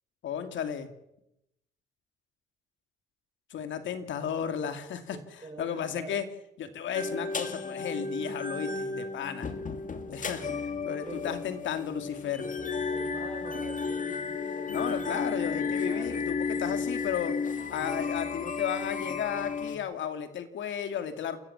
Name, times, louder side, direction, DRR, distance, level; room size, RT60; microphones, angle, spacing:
voice 1, 0.2-0.9 3.5-6.3 6.6-9.5 10.1-10.5 10.8-12.4 14.7-17.3 17.7-21.4, left 8 dB, 70° left, 8 dB, 2.5 m, -34 dB
voice 2, 5.1-6.2 10.4-11.9 12.4-15.1 15.6-16.1 16.7-16.9 17.2-18.0, right 3 dB, 25° right, 5 dB, 4.8 m, -47 dB
sound 1, 6.9-19.8, left 4 dB, 40° left, 2.2 m, -33 dB
29.0 x 14.5 x 7.2 m, 0.85 s
cardioid pair, 90°, 20 cm